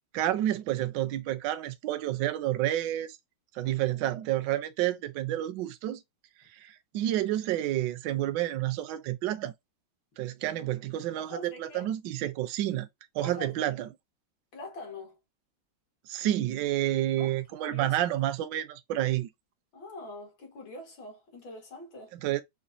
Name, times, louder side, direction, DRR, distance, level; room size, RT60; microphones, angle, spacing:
voice 1, 0.1-3.2 3.5-6.0 6.5-9.5 10.2-12.9 13.1-13.9 16.1-19.3 22.1-22.4, right 13 dB, 75° right, 1.2 m, -29 dB
voice 2, 3.6-4.0 11.2-11.9 13.2-13.7 14.5-15.2 17.2-18.0 19.7-22.1, left 2 dB, 70° left, 2.3 m, -44 dB
5.1 x 2.3 x 2.5 m
omnidirectional pair, 2.2 m